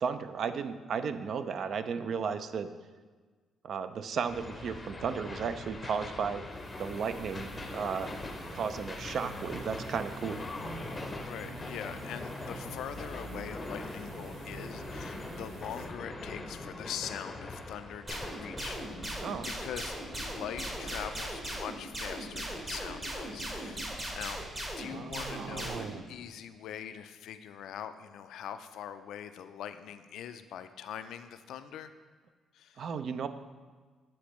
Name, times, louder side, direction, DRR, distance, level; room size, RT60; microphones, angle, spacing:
voice 1, 0.0-2.7 3.6-6.4 6.8-8.1 8.5-10.4 19.2-19.5 24.8-26.0 32.8-33.3, right 6 dB, 60° right, 11 dB, 0.3 m, -34 dB
sound 1, 4.3-21.2, left 2 dB, 25° left, 0.6 m, -42 dB
sound 2, 6.5-15.8, right 3 dB, 80° right, 0.8 m, -48 dB
voice 2, 11.1-19.0 19.4-24.5 24.8-31.9 32.5-32.8, left 9 dB, 80° left, 10 dB, 0.3 m, -43 dB
sound 3, 18.1-25.9, right 1 dB, 30° right, 1.2 m, -38 dB
8.5 x 4.2 x 3.1 m, 1.4 s
cardioid pair, 90°, 0 cm